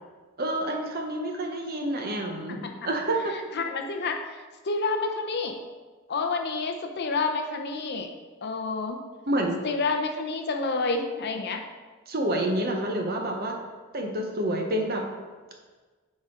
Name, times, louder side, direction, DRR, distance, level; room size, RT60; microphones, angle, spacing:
voice 1, 0.4-3.3 9.3-9.6 12.1-13.6 13.9-15.1, right 1 dB, 45° right, 2 dB, 0.9 m, -28 dB
voice 2, 3.5-4.4 4.6-5.6 6.1-8.1 8.4-9.0 9.6-11.6, left 3 dB, 50° left, 4 dB, 0.6 m, -29 dB
8.6 x 4.2 x 3.7 m, 1.4 s
head